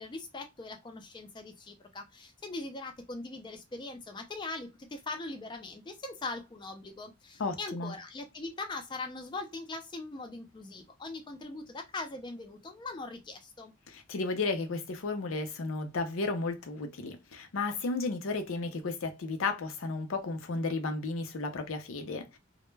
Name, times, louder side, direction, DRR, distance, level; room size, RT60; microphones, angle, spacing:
voice 1, 0.0-13.7, left 3 dB, 20° left, 0.4 m, -41 dB
voice 2, 7.4-7.9 13.9-22.4, left 3 dB, 75° left, 0.5 m, -33 dB
2.1 x 2.1 x 3.1 m
head